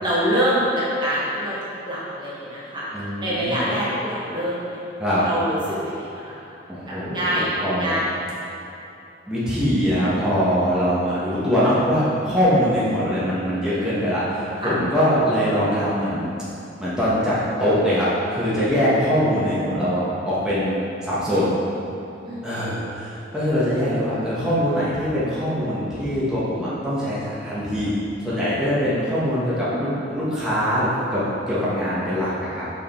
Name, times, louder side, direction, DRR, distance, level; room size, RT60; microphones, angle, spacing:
voice 1, 0.0-1.6 1.8-2.8 3.2-4.8 5.2-6.4 6.7-8.0 14.6-14.7 22.2-22.4, equal, 25° right, -9 dB, 1.3 m, -25 dB
voice 2, 2.9-3.7 5.0-5.3 6.7-7.9 9.3-16.3 16.8-21.5 22.4-27.9 28.2-32.6, equal, 5° right, -11 dB, 1.2 m, -22 dB
5.6 x 5.0 x 4.3 m, 2.9 s
head